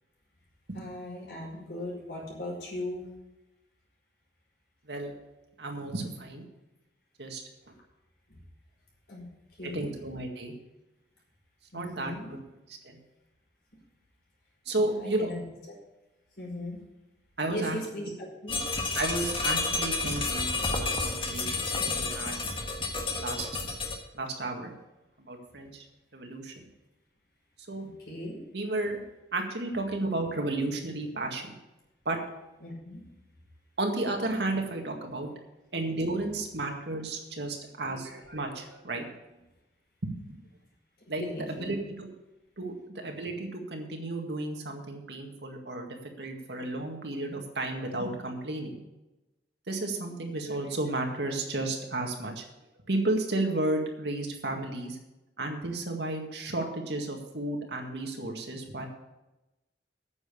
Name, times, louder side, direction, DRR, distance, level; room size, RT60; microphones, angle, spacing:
voice 1, 0.7-3.1 9.1-9.3 9.6-10.0 11.7-12.4 14.8-15.4 16.4-16.8 17.5-18.6 28.1-28.4 32.6-33.0 41.2-41.7, left 1 dB, 60° left, -4 dB, 5.2 m, -38 dB
voice 2, 5.6-6.4 7.2-7.4 9.6-10.5 11.7-12.4 12.7-13.0 14.7-15.4 17.4-17.8 18.9-22.4 23.2-23.5 24.1-24.7 25.2-25.8 26.1-26.7 27.7-27.8 28.5-29.0 29.3-31.5 32.1-32.2 33.8-35.3 35.7-39.1 40.0-40.4 41.1-41.2 41.5-42.1 42.6-48.8 49.7-52.4 52.9-55.0 55.4-58.9, right 2 dB, 75° right, 3 dB, 1.9 m, -33 dB
sound 1, 18.5-24.0, left 3 dB, 30° left, 1.4 m, -30 dB
9.4 x 7.0 x 8.4 m, 0.99 s
head